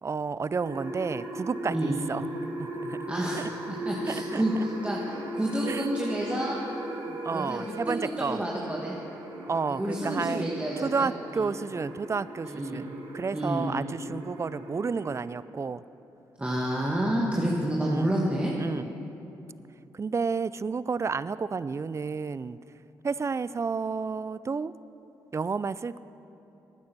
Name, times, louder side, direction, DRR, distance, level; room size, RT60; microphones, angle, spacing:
voice 1, 0.0-2.2 2.6-3.5 4.1-4.6 5.7-5.9 7.1-8.4 9.4-15.8 17.8-18.1 18.6-18.9 19.9-22.6 23.0-24.7 25.3-26.0, right 5 dB, 35° right, 17 dB, 0.4 m, -31 dB
sound 1, 0.6-15.2, right 1 dB, 80° right, 1.7 m, -38 dB
voice 2, 3.1-6.6 7.3-9.0 9.7-11.1 11.4-11.5 12.4-12.8 13.3-13.7 16.4-18.5, right 1 dB, 15° right, -3 dB, 1.7 m, -29 dB
12.5 x 9.5 x 6.0 m, 3.0 s
supercardioid pair, 50°, 9 cm